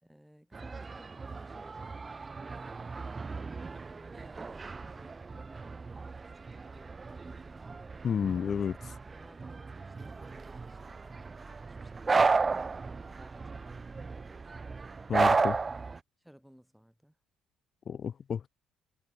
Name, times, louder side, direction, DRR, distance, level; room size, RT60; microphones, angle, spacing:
voice 1, 0.0-2.0 2.5-3.3 3.9-7.9 9.1-14.2 16.2-17.2, equal, ahead, 4.4 m, -58 dB
sound 1, 0.5-16.0, right 4 dB, 30° right, 0.6 m, -34 dB
voice 2, 8.0-9.0 15.1-15.6 17.9-18.5, left 7 dB, 50° left, 0.4 m, -31 dB
hypercardioid pair, 55°, 0 cm